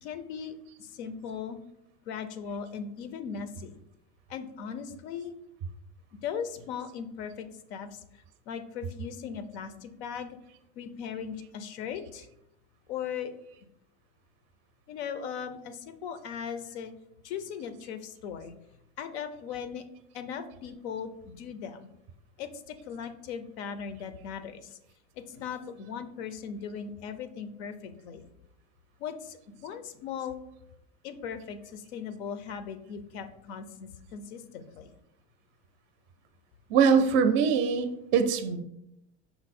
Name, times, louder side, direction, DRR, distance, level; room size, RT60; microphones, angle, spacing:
voice 1, 0.0-1.6 2.1-3.8 4.3-5.3 6.2-8.0 8.5-10.4 10.8-12.3 12.9-13.3 14.9-16.9 17.2-18.5 19.0-19.8 20.1-21.9 22.4-24.8 25.2-28.3 29.0-30.4 31.0-34.9, left 7 dB, 90° left, 10 dB, 0.6 m, -38 dB
voice 2, 36.7-38.6, right 6 dB, 35° right, 8 dB, 0.4 m, -23 dB
5.7 x 2.0 x 4.2 m, 0.81 s
supercardioid pair, 150°, 33 cm